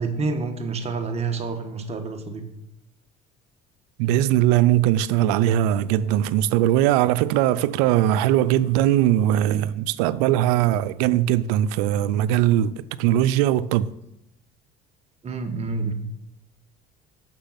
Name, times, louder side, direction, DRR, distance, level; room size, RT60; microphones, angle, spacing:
voice 1, 0.0-2.5 15.2-15.9, right 4 dB, 30° right, 1.2 m, -28 dB
voice 2, 4.0-13.9, right 12 dB, 90° right, 0.4 m, -20 dB
6.7 x 6.1 x 5.7 m
supercardioid pair, 100°, 20 cm